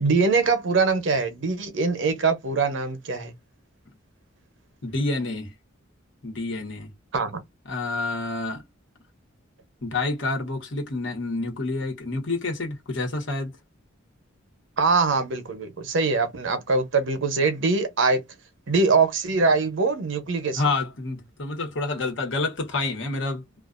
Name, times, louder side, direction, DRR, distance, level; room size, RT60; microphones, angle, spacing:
voice 1, 0.0-3.3 7.1-7.4 14.8-18.2 18.7-20.6, right 4 dB, 70° right, 0.7 m, -23 dB
voice 2, 4.8-5.5 6.2-6.9 7.7-8.6 9.8-13.5 20.6-23.4, left 3 dB, 65° left, 1.1 m, -28 dB
2.4 x 2.3 x 2.4 m
head